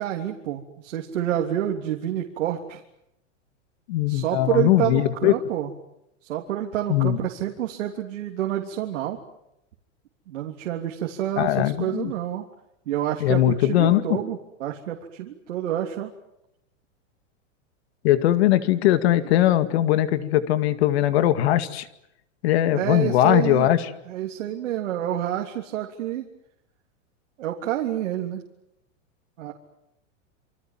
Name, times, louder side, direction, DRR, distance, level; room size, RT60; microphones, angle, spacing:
voice 1, 0.0-2.8 4.1-5.7 6.2-9.2 10.3-12.4 12.9-16.1 22.7-23.7 24.1-26.3 27.4-28.4 29.4-29.5, right 12 dB, 75° right, 2 dB, 3.4 m, -28 dB
voice 2, 3.9-5.3 6.9-7.2 11.4-12.1 13.2-14.2 18.0-21.9 22.4-23.9, left 13 dB, 55° left, 11 dB, 2.2 m, -20 dB
28.0 x 25.0 x 7.6 m, 0.82 s
supercardioid pair, 155°, 38 cm